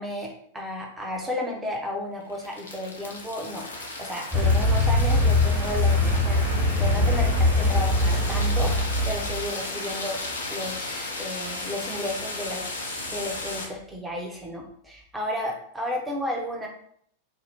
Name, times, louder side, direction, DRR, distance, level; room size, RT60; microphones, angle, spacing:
voice 1, 0.0-8.7 9.1-16.7, left 1 dB, 10° right, 0 dB, 0.7 m, -33 dB
sound 1, 2.2-13.7, left 2 dB, 75° left, 0.5 m, -35 dB
Car, 4.3-9.5, left 1 dB, 25° right, 1.1 m, -22 dB
2.7 x 2.1 x 3.4 m, 0.64 s
figure-of-eight pair, 90°, 0 cm